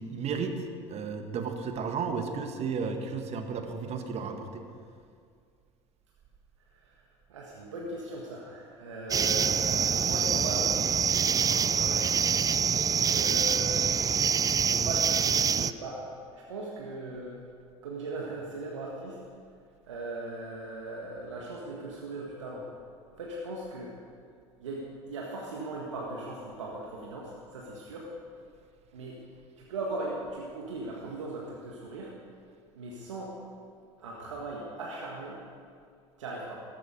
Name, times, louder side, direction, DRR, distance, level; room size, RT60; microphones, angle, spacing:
voice 1, 0.0-4.6, right 5 dB, 45° right, 6 dB, 1.5 m, -33 dB
voice 2, 7.3-12.1 12.9-13.8 14.6-16.0 16.3-17.4 17.8-19.2 19.9-22.6 23.2-23.9 24.6-28.1 28.9-29.2 29.6-32.1 32.7-33.3 34.0-35.4 36.2-36.6, right 2 dB, 80° right, -2 dB, 1.6 m, -39 dB
sound 1, 9.1-15.7, right 7 dB, 25° right, 0.4 m, -25 dB
13.5 x 12.5 x 5.2 m, 2.2 s
hypercardioid pair, 70°, 15 cm